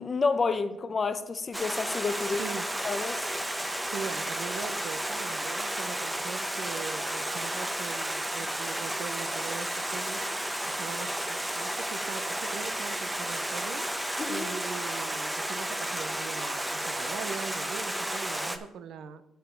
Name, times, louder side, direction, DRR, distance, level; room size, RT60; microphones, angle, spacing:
voice 1, 0.0-2.4 2.8-3.3 14.2-14.5, left 4 dB, 35° left, 0.7 m, -29 dB
Stream, 1.5-18.6, right 1 dB, 10° right, 0.9 m, -32 dB
voice 2, 2.2-2.7 3.8-19.2, right 7 dB, 75° right, 0.6 m, -41 dB
7.9 x 6.8 x 5.1 m
cardioid pair, 90°, 0 cm